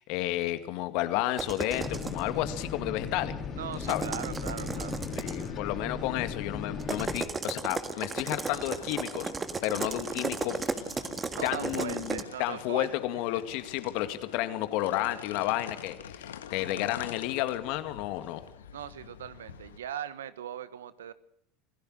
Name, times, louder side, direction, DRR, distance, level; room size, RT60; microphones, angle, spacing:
voice 1, 0.0-3.3 3.7-4.0 5.2-9.3 9.6-10.6 11.4-18.4, left 15 dB, 60° left, 10 dB, 2.1 m, -31 dB
sound 1, 1.4-2.2 3.7-5.5 6.8-12.2, right 4 dB, 25° right, 1.8 m, -35 dB
sound 2, 1.7-7.2, left 5 dB, 40° left, 4.1 m, -37 dB
voice 2, 3.6-5.0 11.3-13.4 18.7-21.1, right 10 dB, 80° right, 16 dB, 1.2 m, -40 dB
sound 3, 4.1-19.8, left 9 dB, 80° left, 1.5 m, -48 dB
27.0 x 16.0 x 6.4 m, 0.73 s
hypercardioid pair, 75°, 0 cm